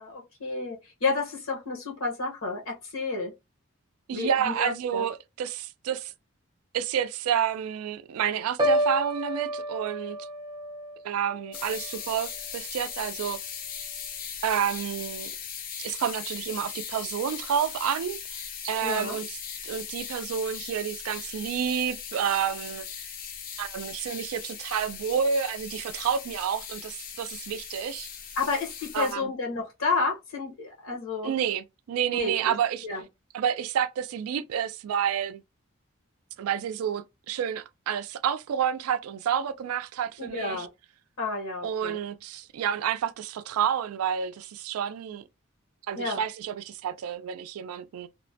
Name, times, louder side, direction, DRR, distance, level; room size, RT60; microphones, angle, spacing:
voice 1, 0.0-3.3 4.1-5.0 18.8-19.2 28.4-31.3 32.1-32.5 32.8-33.0 40.2-40.7 41.2-42.0 46.0-46.2, left 4 dB, 75° left, 1.0 m, -31 dB
voice 2, 4.1-6.1 6.7-10.2 11.0-13.4 14.4-15.3 15.8-19.4 19.6-22.9 23.6-28.1 28.9-29.3 30.9-31.0 31.2-32.9 33.3-35.4 36.4-40.7 41.6-45.2 45.9-48.1, right 8 dB, 90° right, 0.3 m, -29 dB
Piano, 8.6-12.5 12.9-13.3, equal, 20° right, 0.5 m, -31 dB
sound 1, 11.5-29.1, left 7 dB, 40° left, 0.4 m, -39 dB
2.9 x 2.1 x 2.6 m
head